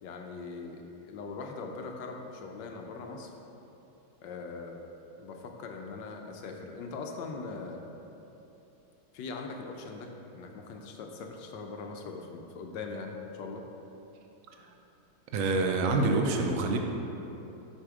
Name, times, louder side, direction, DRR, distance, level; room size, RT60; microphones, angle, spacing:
voice 1, 0.0-3.3 4.2-4.8 5.2-7.9 9.1-13.6, left 4 dB, 70° left, 3 dB, 1.3 m, -41 dB
voice 2, 15.3-16.8, right 3 dB, 80° right, 3 dB, 0.7 m, -26 dB
6.4 x 5.8 x 4.8 m, 3.0 s
omnidirectional pair, 2.2 m